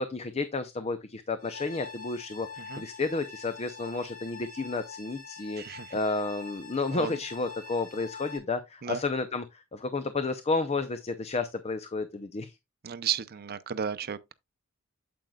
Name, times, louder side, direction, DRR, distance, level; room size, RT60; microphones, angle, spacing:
voice 1, 0.0-12.6, left 3 dB, 30° left, 0.5 m, -32 dB
sound 1, 1.4-8.4, left 4 dB, 75° left, 2.8 m, -45 dB
voice 2, 5.6-5.9 6.9-7.2 8.8-9.0 12.8-14.3, right 8 dB, 45° right, 0.6 m, -34 dB
8.9 x 7.7 x 2.3 m
head